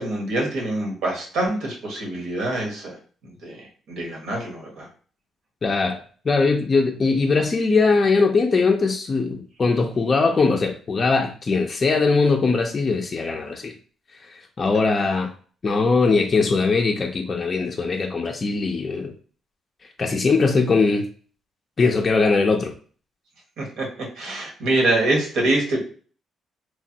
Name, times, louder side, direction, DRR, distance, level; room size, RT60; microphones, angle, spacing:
voice 1, 0.0-3.0 3.2-4.9 23.6-25.8, right 2 dB, 80° right, 1.0 m, -25 dB
voice 2, 5.6-13.7 14.3-15.3 15.6-19.1 20.0-21.1 21.8-22.7, left 4 dB, 35° left, 0.4 m, -21 dB
3.1 x 2.1 x 2.7 m
cardioid pair, 90°, 0 cm